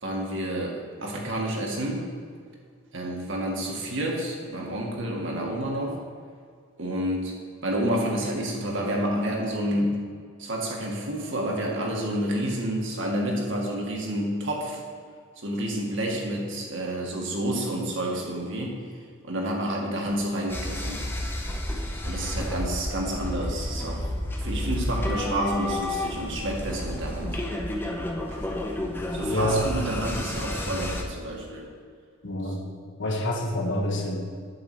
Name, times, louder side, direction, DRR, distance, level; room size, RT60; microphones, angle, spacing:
voice 1, 0.0-2.1 2.9-6.0 6.8-7.3 7.6-10.0 10.4-14.8 15.4-18.8 19.2-21.0 22.0-24.1 24.4-27.4 29.1-31.7 32.4-32.5 33.0-33.1, right 1 dB, 60° right, -1 dB, 1.8 m, -29 dB
sound 1, 20.5-31.0, left 1 dB, 10° left, 0.7 m, -31 dB
voice 2, 29.2-29.7 32.2-32.6 33.0-34.2, left 1 dB, 55° left, 1 dB, 1.4 m, -27 dB
8.6 x 4.9 x 7.3 m, 2.1 s
head